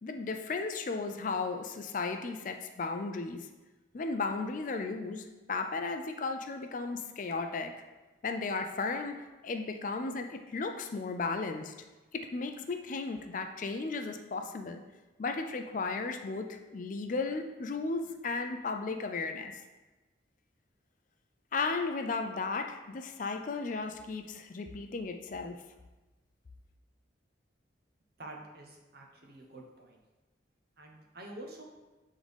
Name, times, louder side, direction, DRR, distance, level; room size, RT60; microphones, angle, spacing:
voice 1, 0.0-3.5 3.9-7.7 8.2-11.7 12.1-14.8 15.2-19.5 21.5-25.6, left 4 dB, 45° left, 6 dB, 0.4 m, -35 dB
voice 2, 28.2-30.0 30.8-31.6, right 1 dB, 55° right, 1 dB, 0.9 m, -48 dB
7.9 x 3.6 x 3.5 m, 1.2 s
head